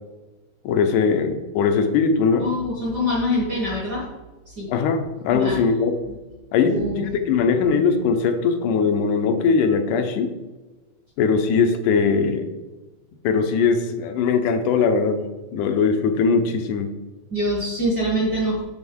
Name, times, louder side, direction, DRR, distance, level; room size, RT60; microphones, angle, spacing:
voice 1, 0.7-2.5 4.7-6.2 6.5-10.3 11.2-12.5 13.2-15.3 15.5-16.9, left 5 dB, 90° left, 6 dB, 2.3 m, -20 dB
voice 2, 2.4-4.1 4.6-4.7 5.3-5.6 6.6-7.1 17.3-18.6, left 1 dB, 55° right, -3 dB, 1.2 m, -24 dB
8.1 x 6.0 x 3.7 m, 1.2 s
omnidirectional pair, 3.5 m